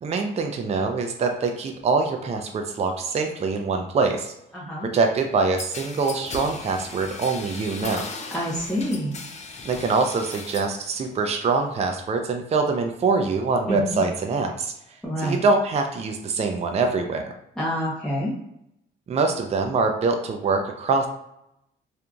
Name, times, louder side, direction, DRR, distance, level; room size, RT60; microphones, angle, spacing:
voice 1, 0.0-4.3 4.8-8.0 9.6-14.7 15.2-17.3 19.1-21.1, right 4 dB, 35° right, 4 dB, 0.4 m, -24 dB
voice 2, 4.5-4.9 8.3-9.2 13.7-14.0 15.0-15.4 17.6-18.3, left 1 dB, 5° left, -7 dB, 0.9 m, -27 dB
sound 1, 5.6-10.8 11.1-11.8, left 4 dB, 35° left, 0.5 m, -37 dB
2.7 x 2.5 x 2.4 m, 0.80 s
cardioid pair, 90°, 20 cm